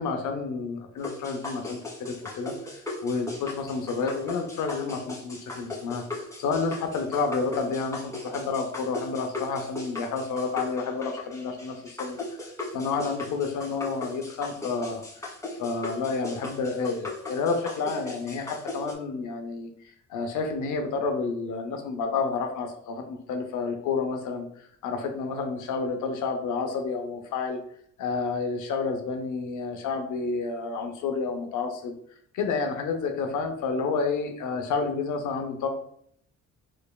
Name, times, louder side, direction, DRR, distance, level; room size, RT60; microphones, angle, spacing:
voice 1, 0.0-2.8 3.0-12.4 12.7-15.0 15.6-19.7 20.1-23.0 23.3-24.5 24.8-27.6 28.0-31.9 32.3-35.7, left 4 dB, 80° left, 4 dB, 0.7 m, -30 dB
sound 1, 1.0-18.9, left 2 dB, 10° left, 1.5 m, -38 dB
4.5 x 3.1 x 2.3 m, 0.65 s
cardioid pair, 90°, 30 cm